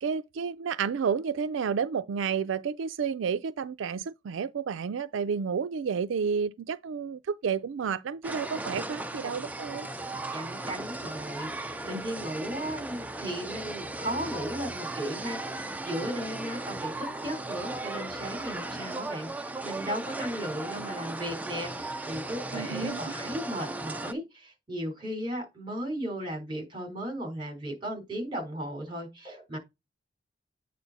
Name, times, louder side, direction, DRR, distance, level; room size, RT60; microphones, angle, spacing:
voice 1, 0.0-9.9 22.5-23.0, right 6 dB, 85° right, 0.4 m, -31 dB
sound 1, 8.2-24.1, right 2 dB, 10° right, 0.4 m, -37 dB
voice 2, 10.3-29.6, equal, 25° right, 3.7 m, -36 dB
8.5 x 4.2 x 4.0 m
head